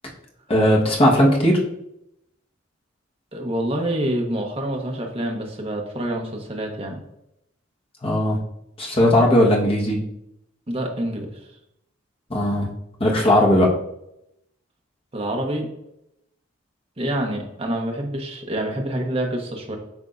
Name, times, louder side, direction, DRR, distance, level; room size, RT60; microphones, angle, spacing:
voice 1, 0.5-1.6 8.0-8.4 8.8-10.0 12.3-12.7 13.0-13.7, left 1 dB, 30° left, -2 dB, 1.3 m, -17 dB
voice 2, 3.3-7.0 10.7-11.3 15.1-15.7 17.0-19.8, right 1 dB, 30° right, 1 dB, 1.0 m, -27 dB
10.5 x 3.6 x 2.6 m, 0.81 s
head